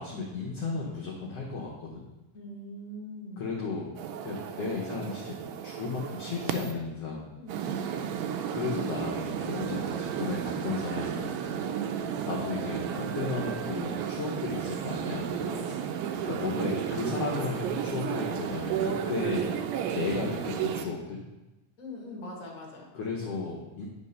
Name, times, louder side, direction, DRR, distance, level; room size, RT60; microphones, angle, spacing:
voice 1, 0.0-2.0 3.4-3.9 4.2-5.3 5.6-7.3 8.5-11.4 12.3-15.3 16.2-19.5 19.9-21.2 22.9-23.9, left 4 dB, 65° left, -3 dB, 1.6 m, -34 dB
voice 2, 2.3-3.5 7.4-8.0 11.6-12.1 15.3-15.9 21.8-22.9, left 1 dB, 35° left, -2 dB, 1.4 m, -43 dB
sound 1, 4.0-6.7 7.5-20.9, right 8 dB, 85° right, 2.3 m, -33 dB
10.5 x 3.6 x 5.4 m, 1.0 s
omnidirectional pair, 4.0 m